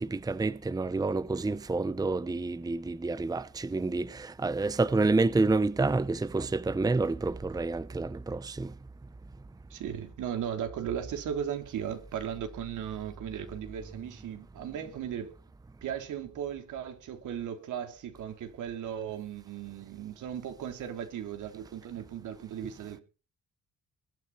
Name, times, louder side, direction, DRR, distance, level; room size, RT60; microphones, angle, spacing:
voice 1, 0.0-8.7, right 3 dB, 10° right, 0.7 m, -28 dB
voice 2, 9.7-15.4 15.8-23.0, right 9 dB, 80° right, 3.6 m, -37 dB
22.0 x 9.6 x 4.3 m
cardioid pair, 90°, 30 cm